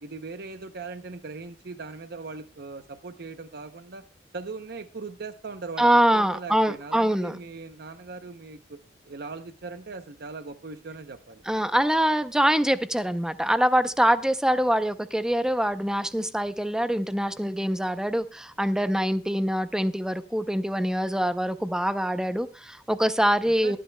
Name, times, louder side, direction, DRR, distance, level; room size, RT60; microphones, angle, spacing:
voice 1, 0.0-4.0 4.3-8.8 9.0-11.4 23.4-23.8, right 4 dB, 60° right, 9 dB, 0.7 m, -39 dB
voice 2, 5.8-7.4 11.5-23.8, equal, 5° right, 11 dB, 0.6 m, -24 dB
22.5 x 10.0 x 2.2 m, 0.32 s
head